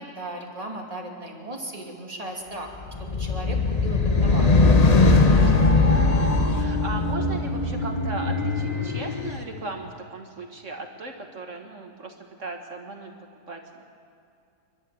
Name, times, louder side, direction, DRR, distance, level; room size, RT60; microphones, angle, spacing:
voice 1, 0.0-2.7 3.0-4.5, right 1 dB, 25° right, -1 dB, 2.7 m, -36 dB
sound 1, 2.9-9.4, left 3 dB, 30° left, 1.1 m, -20 dB
voice 2, 5.1-13.1 13.5-13.8, right 3 dB, 55° right, 3 dB, 1.8 m, -37 dB
29.5 x 12.0 x 7.7 m, 2.5 s
omnidirectional pair, 1.6 m